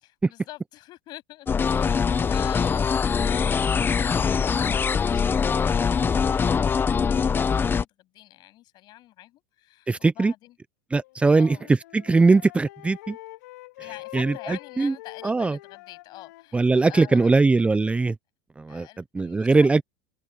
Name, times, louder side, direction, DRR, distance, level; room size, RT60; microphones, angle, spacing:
voice 1, 0.0-6.8 7.1-10.6 11.2-11.6 13.8-17.4 18.7-19.8, left 16 dB, 50° left, 8.0 m, -45 dB
sound 1, 1.5-7.8, left 6 dB, 25° left, 1.1 m, -23 dB
voice 2, 9.9-10.3 10.9-11.6 11.9-13.2 14.1-14.9 15.2-15.6 16.5-18.2 18.6-18.9 19.1-19.8, right 3 dB, 15° right, 0.8 m, -20 dB
Wind instrument woodwind instrument, 11.0-17.4, left 19 dB, 75° left, 2.8 m, -45 dB
hypercardioid pair, 95°, 9 cm